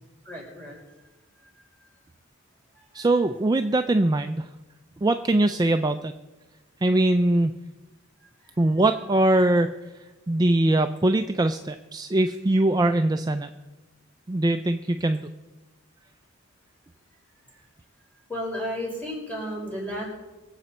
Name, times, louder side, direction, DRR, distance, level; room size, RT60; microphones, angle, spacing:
voice 1, 0.2-0.8 1.8-1.9 2.7-3.2 8.4-8.5 18.3-20.1, equal, 10° left, -4 dB, 5.1 m, -33 dB
voice 2, 2.9-4.5 5.0-6.1 6.8-7.5 8.6-9.7 10.3-13.5 14.3-15.3, right 1 dB, 20° right, 8 dB, 0.4 m, -22 dB
23.5 x 8.1 x 4.3 m, 1.1 s
head